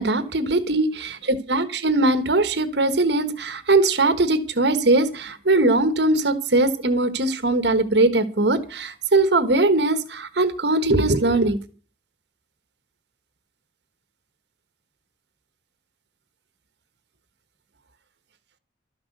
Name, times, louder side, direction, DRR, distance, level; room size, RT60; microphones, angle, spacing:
voice 1, 0.0-11.6, right 2 dB, 65° right, 11 dB, 1.3 m, -20 dB
13.0 x 10.5 x 6.6 m, 0.37 s
head